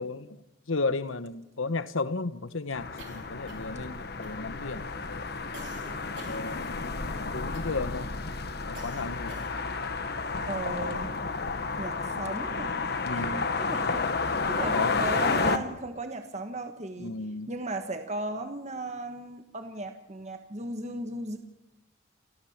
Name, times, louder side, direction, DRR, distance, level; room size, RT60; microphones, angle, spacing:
voice 1, 0.0-5.3 6.2-7.0 7.3-8.1 8.6-9.5 13.0-13.4 14.5-15.0 15.3-15.7 17.0-17.6, left 3 dB, 90° left, 1.1 m, -34 dB
sound 1, 2.7-15.6, left 4 dB, 55° left, 1.3 m, -31 dB
sound 2, 3.0-3.9 4.2-4.7 5.5-7.0 7.5-8.0 8.7-9.8, right 2 dB, 65° right, 4.5 m, -49 dB
voice 2, 10.5-11.2 11.8-12.8 13.1-17.2 17.5-21.4, right 2 dB, 35° right, 1.5 m, -36 dB
29.0 x 15.5 x 7.3 m
head